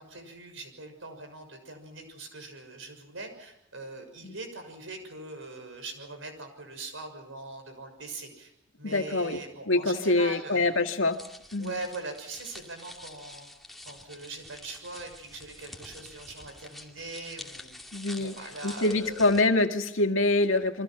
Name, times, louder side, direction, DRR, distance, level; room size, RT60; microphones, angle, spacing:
voice 1, 0.0-8.5 8.8-11.0 11.6-13.5 13.8-17.8 18.1-19.3, right 2 dB, 75° right, 6 dB, 6.5 m, -41 dB
voice 2, 8.8-9.4 9.7-11.2 11.5-11.8 17.9-18.3 18.6-20.8, left 2 dB, 80° left, 6 dB, 2.1 m, -25 dB
sound 1, 11.0-19.4, left 1 dB, ahead, 2.5 m, -47 dB
29.0 x 24.0 x 6.0 m, 0.75 s
head